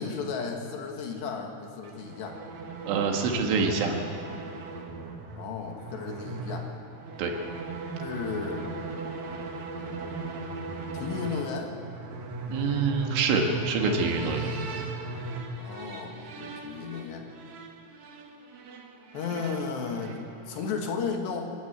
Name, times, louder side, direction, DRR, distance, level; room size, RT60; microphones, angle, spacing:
voice 1, 0.0-2.4 5.3-6.7 8.0-8.7 10.9-11.8 15.5-17.3 19.1-20.2 20.5-21.6, left 5 dB, 70° left, 2 dB, 3.9 m, -34 dB
sound 1, 1.8-20.9, right 3 dB, 55° right, 2.2 m, -38 dB
voice 2, 2.9-4.0 7.2-7.4 12.5-14.5, right 4 dB, 85° right, 2 dB, 4.3 m, -26 dB
27.5 x 12.5 x 8.2 m, 2.5 s
omnidirectional pair, 5.4 m